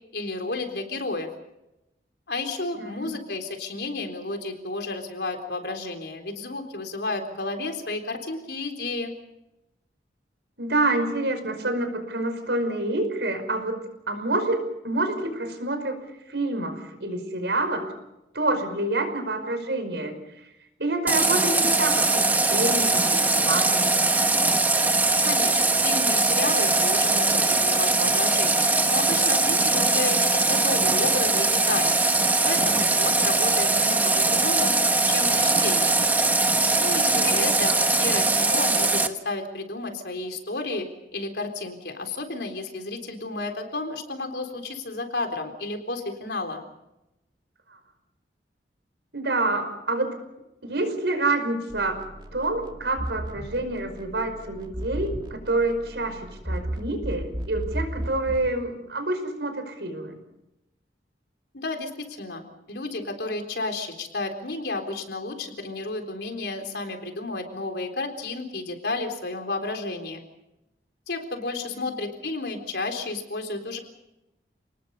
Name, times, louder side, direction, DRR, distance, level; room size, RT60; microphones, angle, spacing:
voice 1, 0.1-1.3 2.3-9.1 25.2-32.0 32.4-34.7 35.1-35.9 36.7-40.9 41.1-46.6 61.5-70.2 71.1-73.8, left 2 dB, 70° left, 5 dB, 3.9 m, -32 dB
voice 2, 2.7-3.1 10.6-16.0 16.3-17.9 18.3-20.2 20.8-24.0 37.2-37.5 49.1-50.1 50.6-52.0 52.3-60.2 71.6-71.9, right 2 dB, 75° right, 7 dB, 5.3 m, -27 dB
Water tap faucet, 21.1-39.1, right 2 dB, 10° right, 1.2 m, -21 dB
sound 1, 51.7-58.5, equal, 25° right, 2.2 m, -35 dB
29.0 x 20.0 x 5.4 m, 0.90 s
head